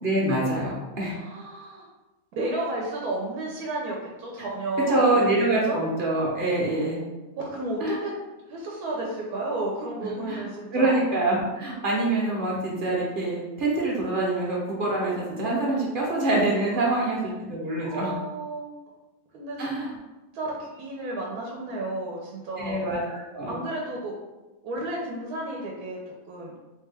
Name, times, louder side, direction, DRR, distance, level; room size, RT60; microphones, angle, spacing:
voice 1, 0.0-1.2 4.9-7.0 7.8-8.0 10.0-10.4 10.7-18.1 19.6-19.9 22.6-23.6, right 2 dB, 45° right, -4 dB, 0.7 m, -25 dB
voice 2, 1.1-1.9 2.4-5.8 7.4-8.1 8.5-11.0 16.7-17.0 17.8-18.8 19.3-19.9 20.3-22.8 23.5-24.1 24.6-26.5, right 2 dB, 90° right, -2 dB, 1.1 m, -32 dB
3.5 x 2.2 x 3.3 m, 1.1 s
omnidirectional pair, 1.6 m